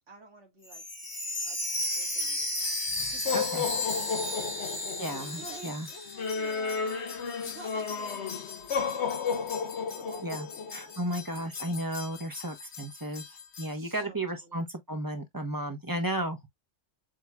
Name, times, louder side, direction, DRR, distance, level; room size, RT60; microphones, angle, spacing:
voice 1, 0.1-0.8 1.4-1.7 2.0-2.7 3.1-4.7 5.4-7.1 7.4-8.5 8.9-10.7 11.1-11.2 13.7-14.7, right 2 dB, 85° right, 2.0 m, -50 dB
Chime, 0.6-6.6 6.9-7.0 7.6-7.7, left 1 dB, 20° left, 1.3 m, -33 dB
sound 1, 1.8-13.7, left 6 dB, 65° left, 1.2 m, -34 dB
voice 2, 3.3-3.6 5.0-5.9 10.2-16.5, right 1 dB, 20° right, 1.0 m, -34 dB
7.7 x 2.8 x 2.2 m
omnidirectional pair, 1.2 m